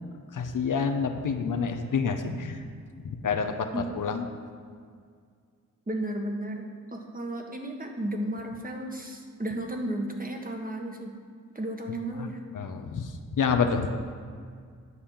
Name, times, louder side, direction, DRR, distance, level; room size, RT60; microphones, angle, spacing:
voice 1, 0.3-2.7 3.0-4.2 12.2-12.3 12.5-13.9, left 5 dB, 75° left, 5 dB, 0.9 m, -28 dB
voice 2, 5.9-6.6 6.9-11.1 11.5-12.4, right 1 dB, 25° right, 2 dB, 1.5 m, -33 dB
9.8 x 6.8 x 5.7 m, 2.1 s
cardioid pair, 65°, 31 cm